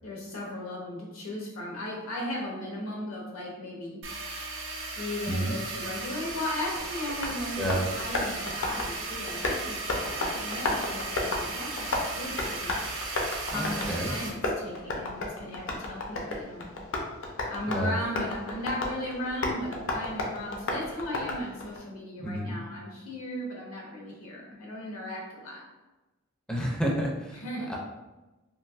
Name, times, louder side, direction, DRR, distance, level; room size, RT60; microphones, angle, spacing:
voice 1, 0.0-4.4 4.9-12.7 13.4-16.7 17.5-25.6 27.3-27.7, left 1 dB, 80° left, -3 dB, 1.0 m, -36 dB
sound 1, 4.0-14.3, right 3 dB, 60° right, 0.6 m, -36 dB
Tap, 6.3-21.8, left 2 dB, 60° left, 0.6 m, -34 dB
voice 2, 13.5-14.1 17.7-17.9 22.2-22.6 26.5-27.4 27.7-27.8, equal, 5° left, -2 dB, 0.4 m, -29 dB
3.3 x 2.6 x 2.4 m, 1.1 s
head